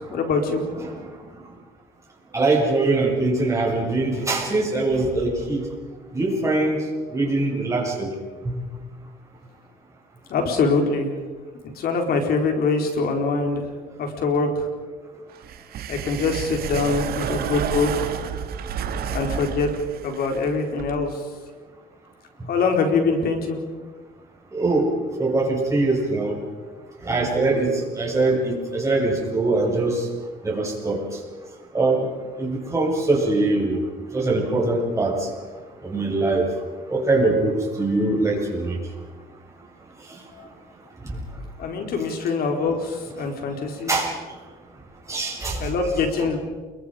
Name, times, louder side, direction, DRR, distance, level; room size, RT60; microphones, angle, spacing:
voice 1, 0.1-0.6 10.3-11.1 11.8-13.6 14.0-14.7 15.9-17.9 19.1-19.7 20.0-21.1 22.5-23.6 41.6-43.9 45.6-46.4, left 4 dB, 65° left, 4 dB, 4.5 m, -23 dB
voice 2, 2.3-5.6 6.1-6.8 7.1-8.2 24.5-24.9 25.2-26.3 27.1-27.7 28.0-30.0 30.4-31.0 31.7-32.0 32.4-33.8 34.1-35.3 35.8-36.5 36.9-38.7 43.9-44.1 45.1-45.6, right 2 dB, 15° right, -2 dB, 7.7 m, -22 dB
sound 1, 15.4-21.0, right 8 dB, 65° right, 2.0 m, -30 dB
29.0 x 22.5 x 5.2 m, 1.4 s
cardioid pair, 110°, 17 cm